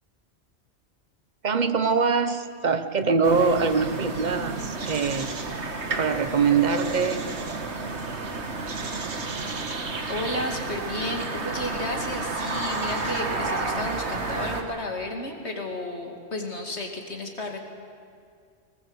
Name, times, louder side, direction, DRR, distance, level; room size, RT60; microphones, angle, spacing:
voice 1, 1.4-5.3 6.0-7.2, right 5 dB, 45° right, 10 dB, 1.1 m, -23 dB
sound 1, 3.2-14.6, right 3 dB, 85° right, 1.9 m, -31 dB
voice 2, 10.1-17.6, left 1 dB, 80° left, 2 dB, 2.8 m, -32 dB
20.5 x 19.5 x 8.1 m, 2.2 s
omnidirectional pair, 1.1 m